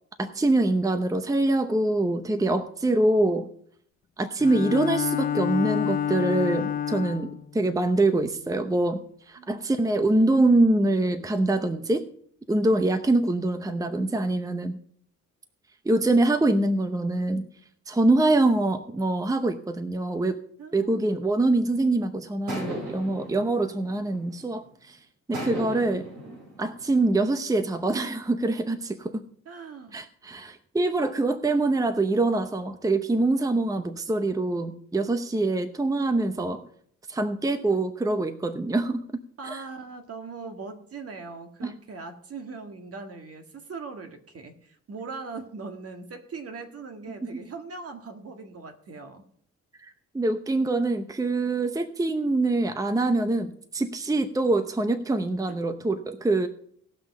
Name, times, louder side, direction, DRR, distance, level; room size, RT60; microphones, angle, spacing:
voice 1, 0.2-3.5 4.2-12.1 12.5-14.8 15.8-17.5 17.9-20.4 20.7-25.0 25.3-26.1 26.6-29.2 29.9-36.7 37.1-39.0 39.4-39.6 41.6-41.7 47.3-47.4 49.8-56.5, right 2 dB, 10° right, 9 dB, 0.8 m, -24 dB
Bowed string instrument, 4.4-7.5, left 9 dB, 30° left, 0.4 m, -28 dB
voice 2, 20.6-21.1 29.5-30.0 37.7-37.8 39.4-49.2 55.5-55.6, right 4 dB, 50° right, 6 dB, 1.9 m, -40 dB
sound 1, 21.6-21.9 22.5-24.6 25.3-27.1, right 1 dB, 80° right, 5.4 m, -37 dB
18.0 x 6.1 x 5.4 m, 0.63 s
cardioid pair, 90°, 30 cm